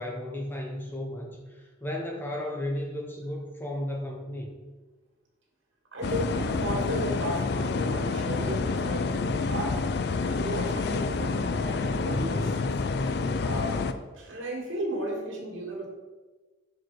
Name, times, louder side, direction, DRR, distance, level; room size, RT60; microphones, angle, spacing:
voice 1, 0.0-4.5, left 1 dB, 10° left, 0 dB, 0.8 m, -34 dB
voice 2, 5.9-9.8 10.2-12.7 13.4-13.9 14.1-15.9, equal, 85° right, -1 dB, 2.0 m, -34 dB
sound 1, 6.0-13.9, left 4 dB, 55° left, 0.4 m, -28 dB
6.2 x 4.8 x 4.6 m, 1.3 s
head